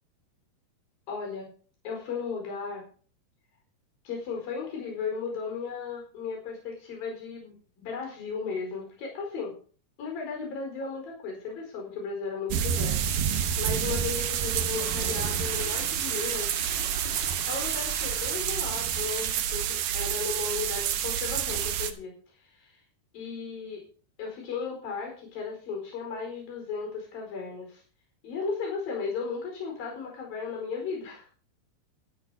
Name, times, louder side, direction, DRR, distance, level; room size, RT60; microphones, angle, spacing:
voice 1, 1.1-1.5 1.8-2.9 4.0-9.5 10.0-16.6 17.5-22.1 22.5-22.8 23.1-23.8 24.2-27.8 28.2-31.2, left 5 dB, 60° left, 0 dB, 6.4 m, -35 dB
sound 1, 12.5-21.9, right 9 dB, 70° right, 2.4 m, -29 dB
Toilet flush, 14.7-19.1, left 11 dB, 90° left, 3.1 m, -45 dB
12.0 x 11.0 x 4.9 m, 0.41 s
omnidirectional pair, 4.7 m